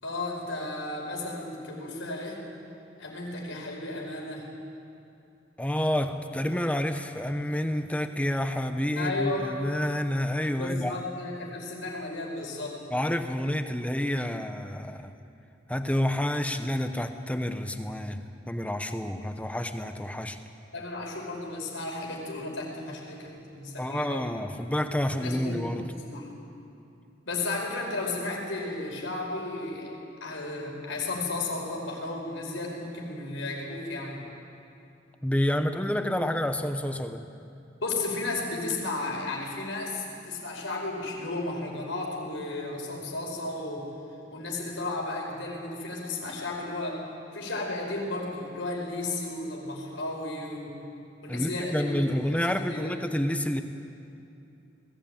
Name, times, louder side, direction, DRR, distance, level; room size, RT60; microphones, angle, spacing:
voice 1, 0.0-2.4 3.0-4.5 9.0-9.5 10.6-12.8 20.7-24.4 25.2-26.3 27.2-29.9 30.2-34.2 37.8-43.9 44.3-47.0 47.3-50.7 51.2-53.0, left 2 dB, 90° left, -1 dB, 5.0 m, -34 dB
voice 2, 5.6-11.0 12.9-15.1 15.7-20.4 23.8-25.8 35.2-37.2 51.3-53.6, left 1 dB, 5° left, 8 dB, 0.8 m, -29 dB
20.5 x 16.5 x 8.9 m, 2.7 s
head